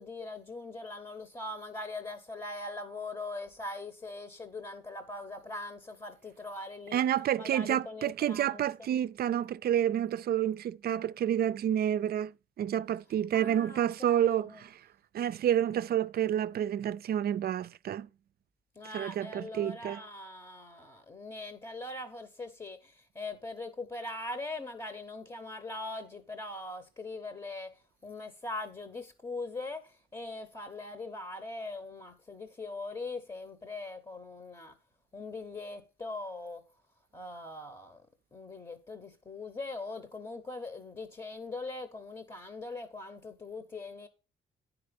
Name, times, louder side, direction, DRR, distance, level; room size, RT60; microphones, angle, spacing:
voice 1, 0.0-7.0 7.4-8.6 13.3-14.6 18.7-34.8 35.1-36.7 37.1-38.1 38.3-44.1, left 2 dB, 20° left, 0.9 m, -41 dB
voice 2, 6.9-12.3 12.6-14.8 15.1-18.1 18.9-20.0, right 10 dB, 50° right, 0.4 m, -29 dB
9.4 x 4.9 x 5.1 m
cardioid pair, 90°, 20 cm